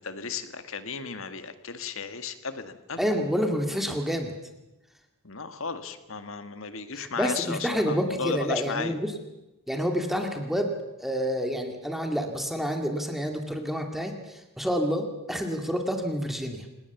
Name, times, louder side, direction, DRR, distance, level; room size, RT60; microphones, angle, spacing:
voice 1, 0.0-3.1 5.2-8.9, left 5 dB, 65° left, 10 dB, 1.8 m, -34 dB
voice 2, 3.0-4.3 6.9-9.1 9.7-10.7 11.0-16.7, equal, ahead, 4 dB, 2.2 m, -28 dB
27.5 x 19.0 x 7.2 m, 0.97 s
head